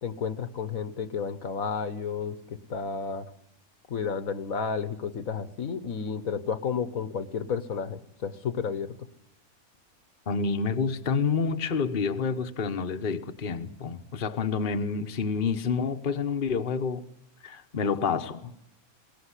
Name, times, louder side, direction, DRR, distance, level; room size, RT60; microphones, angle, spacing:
voice 1, 0.0-3.3 3.9-9.0, left 6 dB, 65° left, 1.6 m, -32 dB
voice 2, 10.3-17.0 17.4-18.5, left 5 dB, 40° left, 1.2 m, -28 dB
22.5 x 18.5 x 9.9 m
omnidirectional pair, 1.5 m